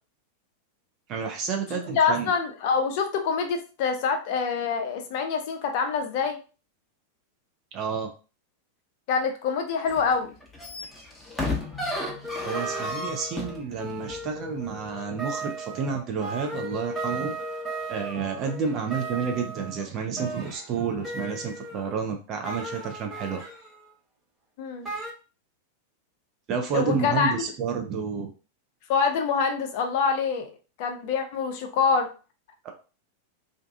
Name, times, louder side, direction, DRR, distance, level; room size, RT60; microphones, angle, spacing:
voice 1, 1.1-2.3 7.7-8.1 12.4-17.3 17.9-23.4 26.5-28.3 32.6-32.7, right 5 dB, 35° right, 3 dB, 0.5 m, -30 dB
voice 2, 1.9-6.4 9.1-10.3 24.6-24.9 26.7-27.5 28.9-30.5 30.8-32.1, left 5 dB, 50° left, 5 dB, 0.5 m, -25 dB
sound 1, 9.9-10.1 10.4-13.6 14.1-14.2, left 2 dB, 5° left, 0.8 m, -32 dB
sound 2, 12.0-21.9 22.4-23.9 24.8-25.1, right 2 dB, 15° right, 1.1 m, -36 dB
2.5 x 2.3 x 2.4 m, 0.34 s
figure-of-eight pair, 90°, 0 cm